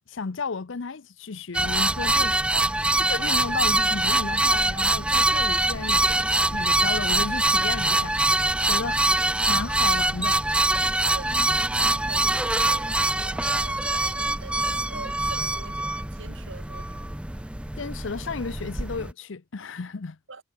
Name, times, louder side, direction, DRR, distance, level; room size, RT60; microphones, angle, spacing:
voice 1, 0.1-2.4 3.1-8.3 8.6-9.0 9.5-10.4 17.8-20.2, left 4 dB, 70° left, 0.7 m, -33 dB
sound 1, 1.5-19.1, right 2 dB, 5° right, 0.5 m, -24 dB
voice 2, 2.5-3.0 8.8-9.1 11.1-17.1 20.3-20.4, right 3 dB, 75° right, 2.2 m, -44 dB
head